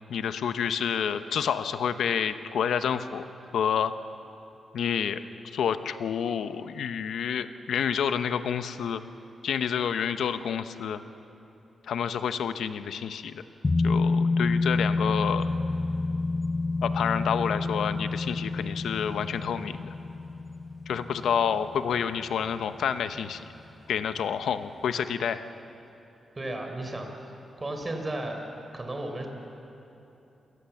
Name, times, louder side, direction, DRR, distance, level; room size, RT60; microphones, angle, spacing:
voice 1, 0.0-3.2 3.5-3.9 4.7-9.0 9.4-11.0 11.9-13.4 13.8-15.5 16.8-19.9 20.9-23.5 23.9-25.4, left 8 dB, 85° left, 10 dB, 0.9 m, -29 dB
sound 1, 13.6-22.8 23.1-23.2, left 3 dB, 30° left, 0.7 m, -28 dB
voice 2, 26.4-27.1 27.6-28.4 28.7-29.3, right 1 dB, 30° right, 3 dB, 4.1 m, -33 dB
28.0 x 18.0 x 7.2 m, 3.0 s
cardioid pair, 75°, 0 cm